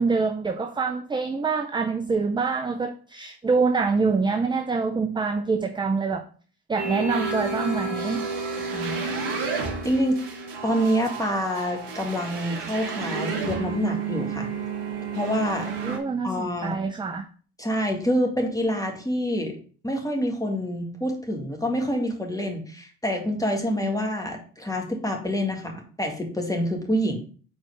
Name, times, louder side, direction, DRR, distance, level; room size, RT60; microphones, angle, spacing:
voice 1, 0.0-6.2 6.7-8.3 15.8-17.3, right 4 dB, 10° right, 6 dB, 0.5 m, -25 dB
sound 1, 6.8-16.0, right 4 dB, 65° right, 1.3 m, -31 dB
voice 2, 8.7-9.3 9.8-10.2 10.6-14.5 15.1-15.7 16.2-16.8 17.6-19.6 19.8-27.2, equal, 10° left, 2 dB, 1.9 m, -27 dB
4.6 x 4.3 x 5.5 m, 0.41 s
hypercardioid pair, 45°, 45 cm